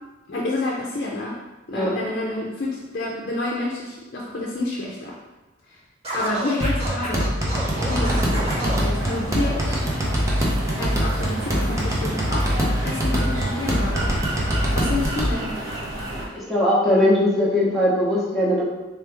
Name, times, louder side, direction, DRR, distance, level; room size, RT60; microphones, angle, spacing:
voice 1, 0.3-1.4 1.7-5.2 5.7-5.8 6.1-7.3 7.8-9.8 10.8-12.5 12.8-15.5, left 2 dB, 55° left, -3 dB, 0.5 m, -29 dB
Scratching (performance technique), 6.0-8.8, right 1 dB, 35° right, 1.5 m, -30 dB
sound 1, 6.6-15.3, equal, 15° right, 0.6 m, -24 dB
sound 2, 7.6-16.3, right 1 dB, 75° right, 0.8 m, -31 dB
voice 2, 16.3-18.7, left 1 dB, ahead, -8 dB, 0.9 m, -20 dB
3.4 x 3.1 x 3.4 m, 1.1 s
head